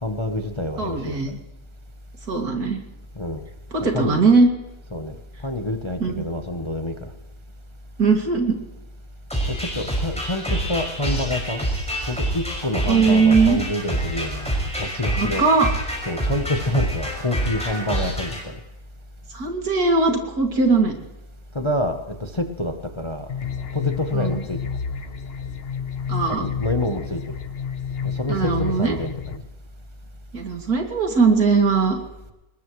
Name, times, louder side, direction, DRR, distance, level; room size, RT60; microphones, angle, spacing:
voice 1, 0.0-1.3 3.2-3.4 3.9-4.2 4.9-5.2 5.4-7.1 9.5-11.6 12.1-15.5 16.1-18.6 21.5-23.3 23.7-24.6 26.3-27.2 28.0-29.4, left 1 dB, 25° left, 5 dB, 0.8 m, -27 dB
voice 2, 0.8-1.3 2.3-2.8 3.7-4.5 6.0-6.2 8.0-8.6 12.9-13.6 15.1-15.7 19.3-20.9 24.1-24.4 26.1-26.5 28.3-29.0 30.3-32.0, right 4 dB, 70° right, 3 dB, 2.9 m, -19 dB
sound 1, 9.3-18.4, right 1 dB, 5° left, 5.9 m, -27 dB
sound 2, 23.3-29.4, left 6 dB, 45° left, 0.9 m, -30 dB
21.5 x 20.0 x 3.1 m, 0.97 s
omnidirectional pair, 1.7 m